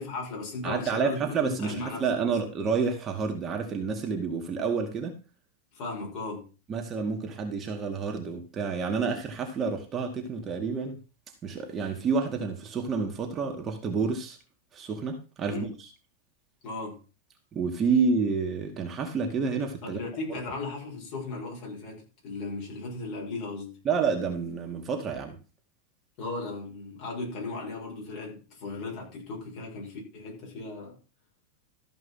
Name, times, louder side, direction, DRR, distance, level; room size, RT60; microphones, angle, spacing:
voice 1, 0.0-2.3 5.7-6.5 15.5-15.7 16.6-17.0 19.8-23.8 26.2-31.0, left 3 dB, 45° left, 6.3 m, -36 dB
voice 2, 0.6-5.2 6.7-11.0 11.4-14.4 14.7-15.9 17.5-20.0 23.8-25.4, right 5 dB, 25° right, 2.1 m, -29 dB
14.0 x 5.2 x 5.7 m
supercardioid pair, 140°, 0 cm